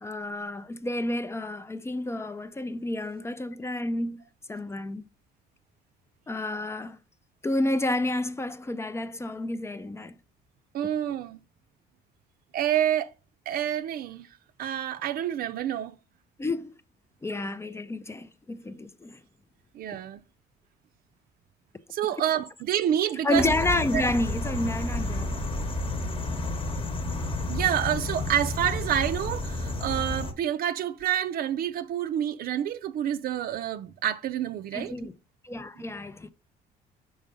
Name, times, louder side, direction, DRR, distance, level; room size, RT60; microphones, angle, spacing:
voice 1, 0.0-4.2 4.5-5.0 6.3-7.0 7.4-10.2 16.4-16.7 17.2-19.2 23.2-25.5 34.7-35.1 35.4-36.3, left 2 dB, 15° left, 0.4 m, -30 dB
voice 2, 10.7-11.4 12.5-13.1 13.5-14.3 14.6-16.0 19.7-20.2 21.9-23.6 23.9-24.0 27.5-35.1, right 10 dB, 60° right, 0.6 m, -28 dB
sound 1, 23.3-30.3, left 2 dB, 30° left, 1.0 m, -31 dB
5.5 x 4.3 x 5.0 m
cardioid pair, 110°, 17 cm